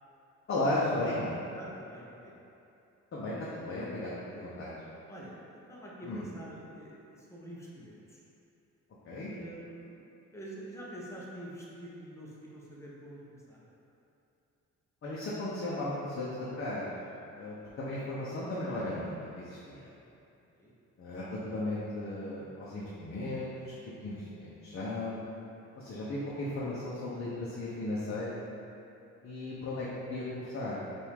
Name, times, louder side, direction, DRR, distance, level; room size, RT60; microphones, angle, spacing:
voice 1, 0.5-1.3 3.1-4.7 6.0-6.2 9.0-9.3 15.0-16.9 17.3-19.9 21.0-23.7 24.0-24.1 24.4-25.3 25.8-28.5 29.2-30.8, left 1 dB, 45° left, -8 dB, 0.8 m, -35 dB
voice 2, 1.5-2.4 5.1-8.2 9.3-10.0 10.3-13.7 20.5-20.7 29.8-30.1, right 1 dB, 10° left, -5 dB, 0.9 m, -47 dB
4.5 x 2.6 x 3.6 m, 2.8 s
cardioid pair, 90°, 30 cm